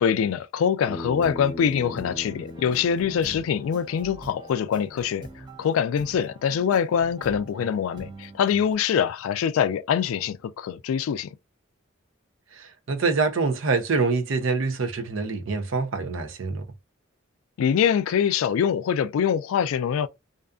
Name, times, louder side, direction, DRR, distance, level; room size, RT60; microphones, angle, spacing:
voice 1, 0.0-11.4 17.6-20.1, left 8 dB, 85° left, 0.3 m, -24 dB
Bass guitar, 0.9-5.1, left 1 dB, 25° left, 1.2 m, -40 dB
sound 1, 1.2-8.7, right 3 dB, 20° right, 0.8 m, -44 dB
voice 2, 12.5-16.6, right 4 dB, 70° right, 0.5 m, -25 dB
2.5 x 2.3 x 2.4 m
head